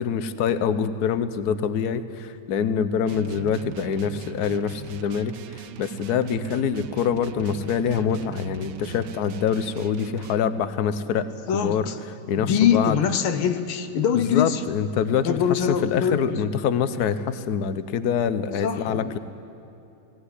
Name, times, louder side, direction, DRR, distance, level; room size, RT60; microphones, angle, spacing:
voice 1, 0.0-11.2 11.5-11.9 12.3-13.0 14.1-15.4 15.7-19.2, left 7 dB, 60° left, 12 dB, 1.2 m, -25 dB
sound 1, 3.0-10.5, right 9 dB, 65° right, 1.2 m, -40 dB
voice 2, 11.5-12.0 12.4-14.6 15.2-16.4 18.6-19.1, left 8 dB, 80° left, 9 dB, 1.8 m, -23 dB
18.0 x 17.5 x 9.9 m, 2.8 s
omnidirectional pair, 2.4 m